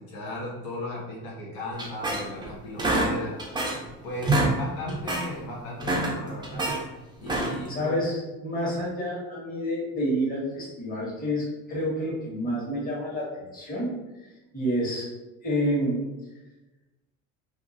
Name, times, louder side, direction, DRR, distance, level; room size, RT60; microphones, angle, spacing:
voice 1, 0.0-3.4 4.0-6.7 7.2-8.0, left 1 dB, 70° left, -6 dB, 1.0 m, -36 dB
sound 1, 1.8-2.5 2.8-3.9 4.2-4.6 4.9-5.3 5.7-6.8 7.2-7.7, right 2 dB, 10° right, 0.5 m, -26 dB
voice 2, 7.7-13.3 13.5-13.9 14.2-15.1 15.4-16.1, equal, 25° left, -6 dB, 1.4 m, -29 dB
2.9 x 2.4 x 2.5 m, 1.1 s
supercardioid pair, 90°, 37 cm